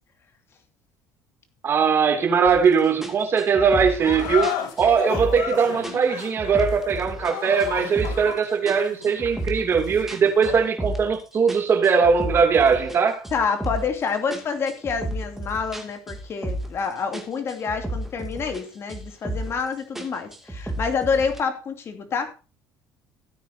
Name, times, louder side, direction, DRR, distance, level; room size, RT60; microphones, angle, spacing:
voice 1, 1.6-13.2, right 6 dB, 35° right, 2.8 m, -20 dB
sound 1, 2.5-2.7 3.0-5.5 5.8-7.3 7.6-8.3 8.7-11.2 11.5-14.0 14.3-16.9 17.1-18.6 18.9-19.6 20.0-21.4, right 1 dB, 5° right, 2.6 m, -32 dB
sound 2, 4.0-10.7, left 8 dB, 80° left, 3.3 m, -33 dB
voice 2, 13.3-22.3, left 5 dB, 35° left, 2.8 m, -27 dB
16.5 x 9.4 x 2.8 m
cardioid pair, 145°, 7 cm